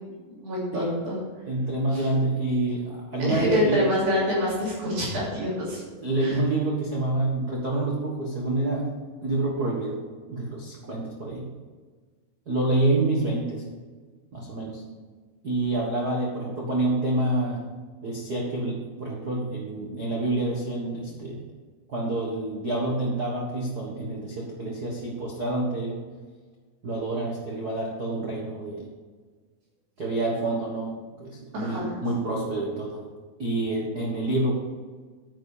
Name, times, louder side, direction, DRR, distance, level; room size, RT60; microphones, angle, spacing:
voice 1, 0.4-1.2 1.9-2.0 3.3-5.8 6.2-6.4 31.5-31.9, equal, 65° right, -7 dB, 4.7 m, -26 dB
voice 2, 1.5-3.8 6.0-8.9 9.2-11.5 12.5-13.6 14.3-14.8 15.4-17.7 18.0-21.4 21.9-26.0 26.8-28.9 30.0-33.0 33.4-34.5, right 2 dB, 80° right, -3 dB, 0.8 m, -27 dB
9.8 x 8.9 x 5.0 m, 1.5 s
omnidirectional pair, 4.6 m